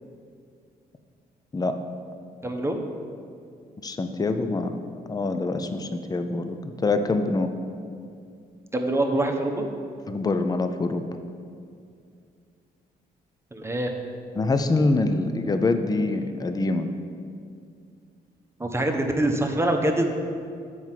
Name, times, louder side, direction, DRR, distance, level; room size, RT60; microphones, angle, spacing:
voice 1, 2.4-2.8 8.7-9.6 13.5-13.9 18.6-20.0, right 1 dB, 15° right, 2 dB, 0.9 m, -24 dB
voice 2, 3.8-4.7 5.1-7.5 10.1-11.0 14.4-16.9, left 3 dB, 20° left, 8 dB, 0.5 m, -25 dB
7.2 x 4.7 x 5.8 m, 2.3 s
supercardioid pair, 65°, 17 cm